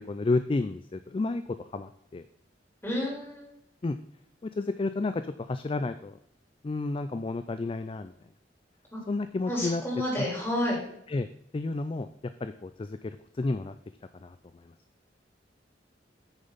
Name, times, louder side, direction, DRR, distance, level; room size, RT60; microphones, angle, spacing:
voice 1, 0.0-2.3 3.8-4.0 4.4-6.2 6.6-8.1 9.1-9.8 10.2-10.3 11.1-11.3 11.5-12.1 12.4-13.7 14.2-14.4 14.6-14.7, left 3 dB, 30° left, 11 dB, 0.3 m, -31 dB
voice 2, 2.8-3.5 8.9-9.0 9.5-10.8, left 1 dB, 15° left, -4 dB, 3.6 m, -30 dB
9.1 x 6.7 x 4.0 m, 0.74 s
head